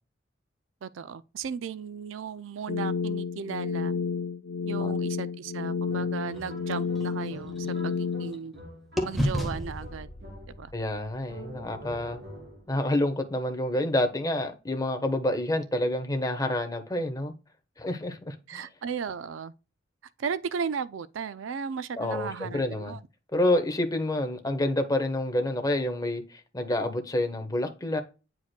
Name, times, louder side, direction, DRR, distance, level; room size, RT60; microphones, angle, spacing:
voice 1, 0.8-3.9 4.6-8.5 9.0-10.1 10.6-10.7 18.5-19.5 20.2-23.0, right 6 dB, 75° right, 0.4 m, -35 dB
sound 1, 2.7-8.3, left 5 dB, 90° left, 0.4 m, -30 dB
sound 2, 5.9-10.8 11.3-12.8, right 1 dB, 55° right, 4.0 m, -46 dB
sound 3, 6.3-8.6 9.0-12.9, equal, ahead, 1.3 m, -35 dB
voice 2, 10.7-12.2 12.7-17.3 17.8-18.6 22.0-23.0 23.3-28.0, left 1 dB, 20° left, 1.1 m, -28 dB
9.7 x 4.7 x 2.2 m
head